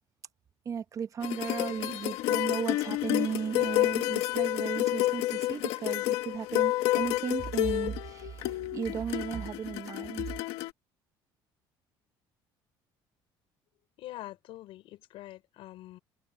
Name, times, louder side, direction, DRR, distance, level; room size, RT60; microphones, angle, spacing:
voice 1, 0.6-10.2, right 7 dB, 35° right, 0.9 m, -35 dB
sound 1, 1.2-10.7, left 17 dB, 85° left, 1.6 m, -30 dB
voice 2, 14.0-16.0, left 16 dB, 70° left, 5.2 m, -45 dB
cardioid pair, 135°, 10 cm